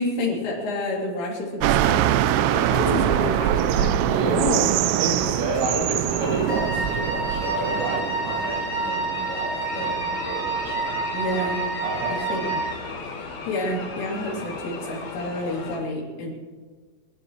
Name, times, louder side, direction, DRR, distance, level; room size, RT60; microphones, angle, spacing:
voice 1, 0.0-4.7 11.1-11.7 12.1-12.6 13.5-16.3, left 1 dB, 75° left, -3 dB, 5.6 m, -29 dB
sound 1, 1.6-8.6, right 12 dB, 85° right, 3.2 m, -23 dB
sound 2, 2.5-15.8, left 4 dB, 60° left, 1.9 m, -36 dB
voice 2, 4.2-4.5 5.0-11.5 11.8-12.5 14.3-14.4, right 3 dB, 65° right, -2 dB, 4.7 m, -31 dB
Wind instrument woodwind instrument, 6.5-12.8, right 3 dB, 25° right, 5.0 m, -29 dB
28.5 x 12.0 x 3.2 m, 1.5 s
omnidirectional pair, 5.7 m